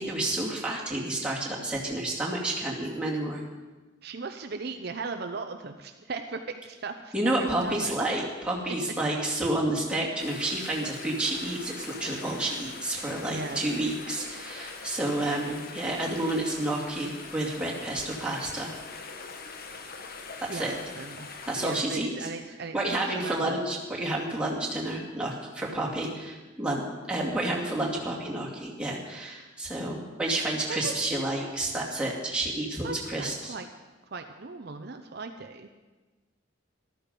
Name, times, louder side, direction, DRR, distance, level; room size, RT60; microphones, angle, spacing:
voice 1, 0.0-3.4 7.1-18.7 20.4-20.7 21.4-22.1 22.7-33.5, right 1 dB, 5° right, -4 dB, 2.4 m, -30 dB
voice 2, 4.0-7.9 9.3-9.4 13.3-13.6 20.5-21.3 21.6-23.6 30.7-30.9 32.8-33.7 34.1-35.7, right 4 dB, 55° right, 6 dB, 0.7 m, -38 dB
sound 1, 10.2-21.8, left 4 dB, 50° left, 1.1 m, -43 dB
13.5 x 12.5 x 5.3 m, 1.2 s
head